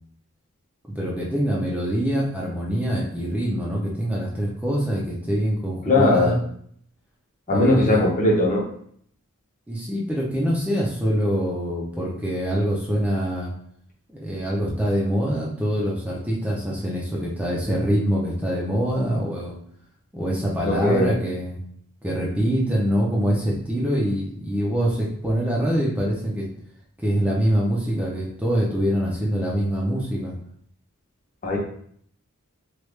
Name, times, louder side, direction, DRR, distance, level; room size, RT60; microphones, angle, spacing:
voice 1, 0.9-6.4 7.5-8.0 9.7-13.5 14.1-19.6 20.1-21.6 22.0-26.5 27.0-30.3, equal, 5° right, -4 dB, 0.5 m, -24 dB
voice 2, 5.8-6.4 7.5-8.7 20.6-21.1 31.4-31.6, left 2 dB, 35° left, -2 dB, 0.7 m, -19 dB
3.1 x 2.3 x 3.2 m, 0.63 s
head